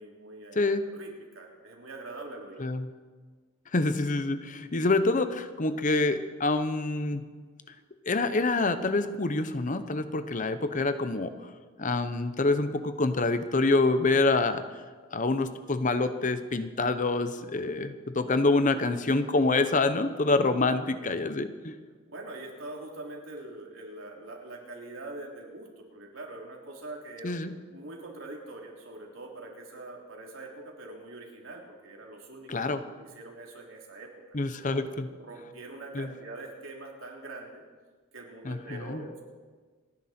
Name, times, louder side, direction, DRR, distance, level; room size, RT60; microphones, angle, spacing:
voice 1, 0.0-2.7 22.1-27.4 27.7-34.4 34.7-37.6 38.1-39.2, right 2 dB, 75° right, 0 dB, 3.2 m, -44 dB
voice 2, 3.7-7.2 8.1-11.3 11.8-14.6 15.1-21.7 27.2-27.5 32.5-32.8 34.3-35.1 35.9-36.1 38.4-39.0, left 3 dB, 40° left, 10 dB, 0.8 m, -26 dB
28.5 x 10.0 x 4.4 m, 1.5 s
head